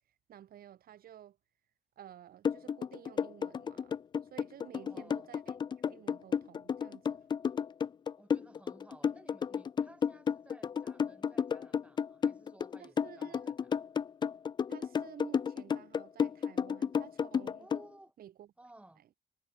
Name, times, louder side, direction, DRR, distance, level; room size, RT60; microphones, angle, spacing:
voice 1, 0.3-1.4 2.0-4.0 4.3-5.5 5.9-7.2 12.8-13.6 14.7-17.7 18.2-18.5 19.0-19.1, right 11 dB, 60° right, 5.8 m, -53 dB
sound 1, 2.4-17.8, left 7 dB, 25° left, 0.4 m, -32 dB
voice 2, 4.8-5.3 8.2-13.8 17.6-18.2 18.6-19.0, right 1 dB, 5° right, 4.0 m, -57 dB
cardioid pair, 145°, 18 cm